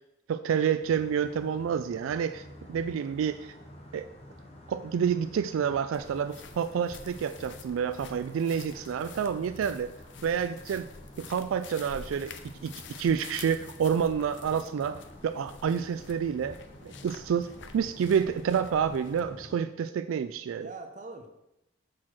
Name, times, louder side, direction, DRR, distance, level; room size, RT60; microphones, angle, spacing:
voice 1, 0.3-2.4 2.7-3.5 3.9-4.0 4.7-9.9 10.2-10.9 11.2-12.3 12.6-12.7 13.0-16.6 16.8-17.5 17.7-20.7, right 7 dB, 80° right, 11 dB, 0.3 m, -28 dB
sound 1, 0.8-19.5, left 1 dB, 30° left, 1.0 m, -49 dB
sound 2, 5.9-19.2, left 5 dB, 60° left, 0.5 m, -49 dB
voice 2, 8.8-9.4 20.5-21.3, right 3 dB, 35° right, 4 dB, 0.8 m, -45 dB
6.1 x 4.4 x 6.2 m, 0.87 s
head